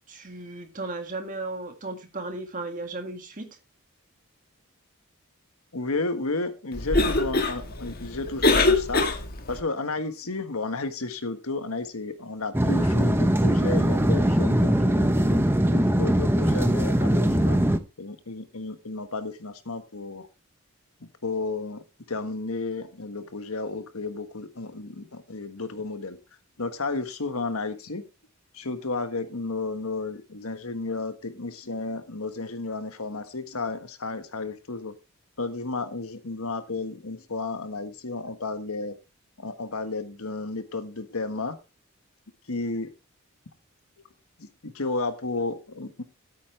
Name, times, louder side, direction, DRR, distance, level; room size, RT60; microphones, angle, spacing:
voice 1, 0.1-3.6, right 2 dB, 35° right, 6 dB, 1.9 m, -35 dB
voice 2, 5.7-9.1 9.5-17.6 18.0-20.3 21.0-26.2 26.6-28.0 28.5-34.9 35.4-38.9 39.4-41.6 42.5-42.9 44.4-46.0, left 3 dB, 75° left, 9 dB, 1.5 m, -32 dB
Cough, 6.7-9.6, left 2 dB, 40° left, 1.6 m, -24 dB
sound 1, 12.5-17.8, right 1 dB, 10° right, 0.8 m, -21 dB
13.5 x 8.6 x 3.3 m, 0.27 s
head